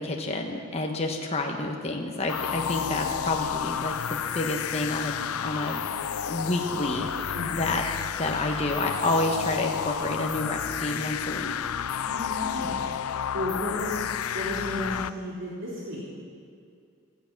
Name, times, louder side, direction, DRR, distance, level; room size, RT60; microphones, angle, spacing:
voice 1, 0.0-5.9 6.3-7.8 8.2-11.5, left 2 dB, 30° left, 2 dB, 1.2 m, -29 dB
sound 1, 2.3-15.1, left 8 dB, 90° left, 0.5 m, -31 dB
voice 2, 12.0-12.8 13.1-14.0 14.3-16.0, left 1 dB, 60° right, -6 dB, 3.5 m, -33 dB
17.0 x 14.0 x 6.0 m, 2.3 s
head